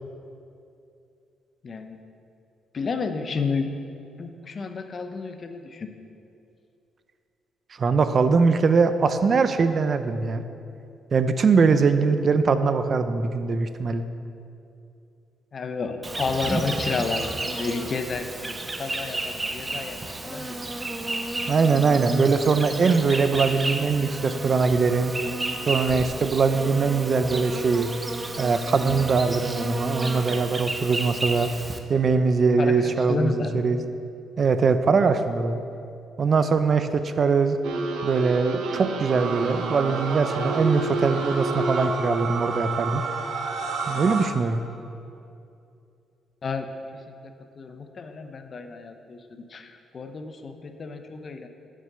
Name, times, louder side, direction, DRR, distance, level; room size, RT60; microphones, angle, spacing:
voice 1, 1.6-2.0 2.7-3.7 4.2-5.9 15.5-20.0 20.2-20.6 32.6-33.5 46.4-46.7 47.6-51.5, left 4 dB, 45° left, 7 dB, 0.7 m, -31 dB
voice 2, 7.8-10.4 11.1-14.1 21.5-25.1 25.7-27.9 28.4-31.5 31.9-33.8 34.4-35.6 36.2-37.6 38.0-43.0 43.9-44.6, right 4 dB, 45° right, 10 dB, 0.5 m, -22 dB
Insect, 16.0-31.8, right 2 dB, 20° right, 0.8 m, -32 dB
sound 1, 37.6-42.3, right 2 dB, 85° right, 0.8 m, -30 dB
sound 2, 39.1-44.3, right 4 dB, 60° right, 1.2 m, -31 dB
7.5 x 6.7 x 6.6 m, 2.6 s
cardioid pair, 90°, 0 cm